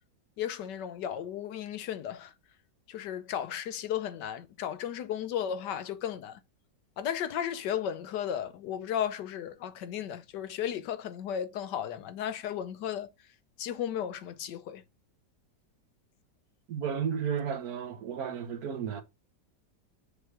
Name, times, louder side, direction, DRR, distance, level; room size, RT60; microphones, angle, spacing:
voice 1, 0.4-2.3 2.9-6.4 7.0-13.1 13.6-14.8, left 9 dB, 75° left, 1.3 m, -34 dB
voice 2, 16.7-19.0, right 7 dB, 60° right, 1.3 m, -33 dB
6.8 x 3.2 x 4.9 m
omnidirectional pair, 1.9 m